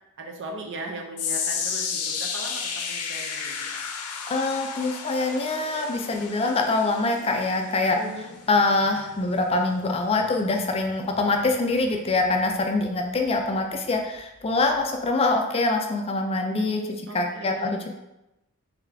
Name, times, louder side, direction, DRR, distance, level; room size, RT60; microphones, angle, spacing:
voice 1, 0.2-3.8 7.9-8.3 17.1-17.8, right 2 dB, 55° right, 1 dB, 0.7 m, -38 dB
sound 1, 1.2-13.5 13.8-14.2 14.8-14.9, left 6 dB, 85° left, 0.5 m, -34 dB
voice 2, 4.3-8.0 8.5-17.9, left 3 dB, 25° left, 3 dB, 0.3 m, -24 dB
3.6 x 3.2 x 3.4 m, 0.94 s
head